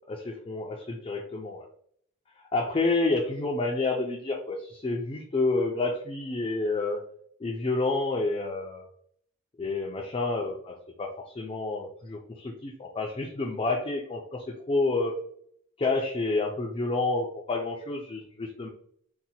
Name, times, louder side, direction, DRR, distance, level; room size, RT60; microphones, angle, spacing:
voice 1, 0.1-1.6 2.5-7.0 7.4-8.9 9.6-15.1 15.8-18.7, left 3 dB, 25° left, -1 dB, 0.3 m, -29 dB
2.7 x 2.1 x 4.0 m, 0.63 s
head